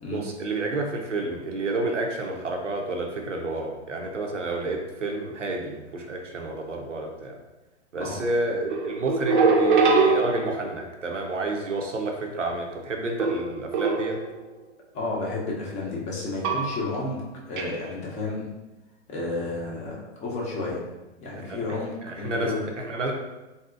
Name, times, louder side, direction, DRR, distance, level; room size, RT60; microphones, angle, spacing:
voice 1, 0.1-7.4 7.9-14.2 21.4-23.1, right 2 dB, 90° right, 2 dB, 0.7 m, -30 dB
sound 1, 8.7-10.9 13.2-14.4 16.4-17.1 17.6-17.8, right 4 dB, 45° right, 0.5 m, -23 dB
voice 2, 14.9-17.2 17.5-18.5 19.1-20.9 21.2-22.6, left 2 dB, 20° left, -3 dB, 0.6 m, -31 dB
3.5 x 2.7 x 2.4 m, 1.1 s
figure-of-eight pair, 115°, 36 cm